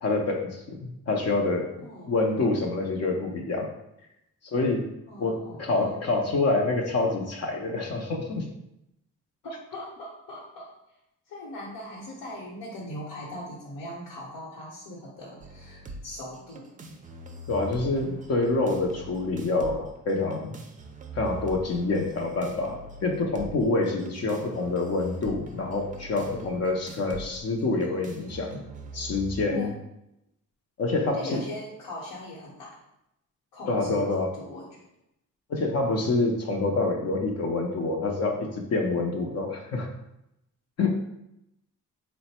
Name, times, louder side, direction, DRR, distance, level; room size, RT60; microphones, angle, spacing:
voice 1, 0.0-0.8 1.1-1.7 2.1-3.7 4.4-4.9 5.2-8.5 17.5-20.6 21.1-28.6 28.9-29.7 30.8-31.4 33.7-34.3 35.5-39.9 40.8-41.0, left 3 dB, 50° left, 1 dB, 0.6 m, -27 dB
voice 2, 1.8-2.1 5.1-6.1 9.4-10.7 11.3-16.9 26.3-26.6 29.5-29.8 31.1-32.8 33.5-34.6, left 1 dB, 75° left, -6 dB, 1.1 m, -40 dB
sound 1, 15.4-29.4, right 2 dB, 25° right, 0.4 m, -43 dB
3.7 x 2.1 x 4.2 m, 0.83 s
cardioid pair, 130°, 32 cm